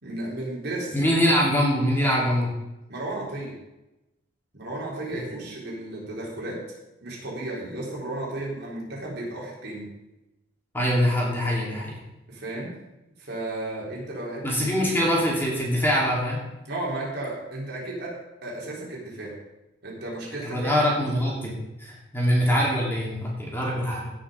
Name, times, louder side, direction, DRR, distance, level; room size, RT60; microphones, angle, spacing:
voice 1, 0.0-1.5 2.9-3.5 4.5-6.6 7.0-9.9 12.3-12.7 13.2-15.1 16.6-19.3 19.8-20.9 21.2-21.5, right 2 dB, 60° right, -3 dB, 3.8 m, -34 dB
voice 2, 0.9-2.5 10.7-11.9 14.4-16.4 20.4-21.5 21.8-24.1, equal, 10° left, -3 dB, 2.8 m, -23 dB
16.5 x 5.9 x 5.0 m, 0.96 s
head